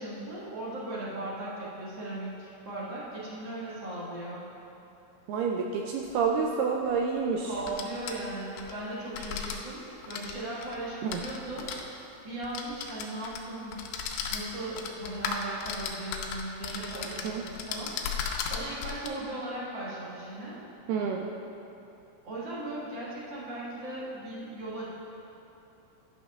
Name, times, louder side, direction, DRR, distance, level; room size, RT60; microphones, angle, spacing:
voice 1, 0.0-4.4 7.5-11.7 12.2-13.8 14.3-17.9 18.5-20.6 22.2-24.9, right 2 dB, 65° right, -7 dB, 1.1 m, -37 dB
voice 2, 5.3-7.5 11.0-11.2 17.2-17.4 20.9-21.3, right 5 dB, 85° right, 1 dB, 2.0 m, -28 dB
sound 1, 6.1-6.2 7.5-8.7 9.1-9.6 10.0-11.8 12.4-13.4 13.7-19.1, left 6 dB, 80° left, 2.5 m, -36 dB
11.0 x 6.0 x 3.5 m, 2.9 s
omnidirectional pair, 4.3 m